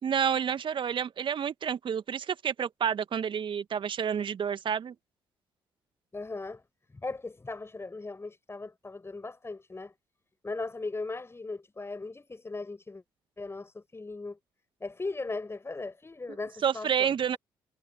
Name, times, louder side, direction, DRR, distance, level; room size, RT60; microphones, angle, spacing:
voice 1, 0.0-4.9 16.6-17.4, right 8 dB, 45° right, 2.1 m, -29 dB
voice 2, 6.1-6.6 6.9-9.9 10.4-13.0 13.4-14.4 14.8-17.4, left 3 dB, 20° left, 5.8 m, -38 dB
figure-of-eight pair, 45°, 11 cm